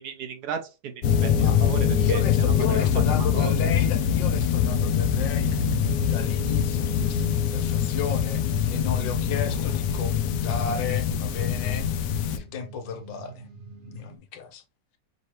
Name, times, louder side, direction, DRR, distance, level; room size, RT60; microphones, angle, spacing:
voice 1, 0.0-2.2 2.7-2.9 3.1-3.5, right 6 dB, 70° right, 1.1 m, -35 dB
sound 1, 1.0-12.4, left 8 dB, 70° left, 1.0 m, -24 dB
voice 2, 1.9-5.5 6.0-8.4 8.7-11.9 12.3-13.4 13.9-14.6, left 6 dB, 85° left, 1.5 m, -34 dB
sound 2, 4.3-14.2, right 9 dB, 50° right, 0.6 m, -43 dB
5.4 x 2.9 x 3.2 m
omnidirectional pair, 1.9 m